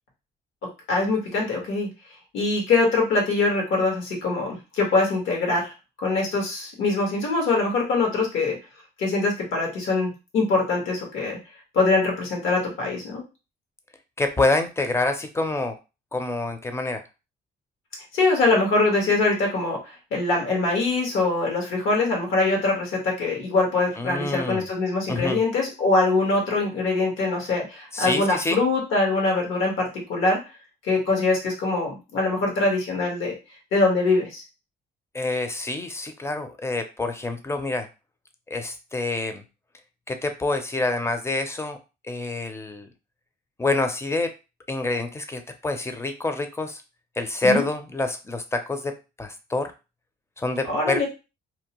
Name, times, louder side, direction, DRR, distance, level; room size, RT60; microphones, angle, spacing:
voice 1, 0.9-1.9 2.3-5.7 6.0-8.6 9.0-11.4 11.7-13.2 18.1-30.4 30.8-33.3 33.7-34.4 47.4-47.6 50.7-51.1, left 3 dB, 80° left, 0 dB, 1.3 m, -23 dB
voice 2, 14.2-15.8 16.1-17.0 24.0-24.7 25.1-25.4 27.9-28.6 35.1-37.9 38.5-39.4 40.1-41.8 42.0-42.9 43.6-44.3 44.7-46.8 47.2-49.7 50.4-51.1, left 2 dB, 15° left, 7 dB, 0.5 m, -27 dB
2.7 x 2.1 x 2.9 m, 0.29 s
cardioid pair, 90°, 20 cm